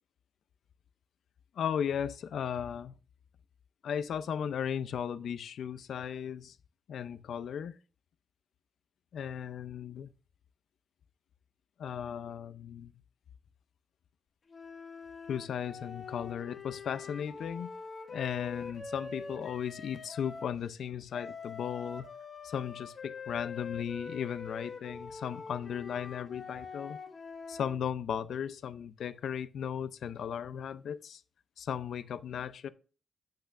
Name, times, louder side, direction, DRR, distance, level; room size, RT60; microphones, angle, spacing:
voice 1, 1.6-2.9 3.8-6.6 6.9-7.7 9.1-10.1 11.8-13.0 15.3-17.7 18.1-22.1 22.4-27.0 27.5-31.2 31.6-32.7, left 8 dB, 80° left, 0.5 m, -36 dB
sound 1, 14.5-20.6 21.1-27.8, left 5 dB, 45° left, 2.0 m, -44 dB
8.7 x 8.0 x 2.5 m
wide cardioid pair, 135°, 0 cm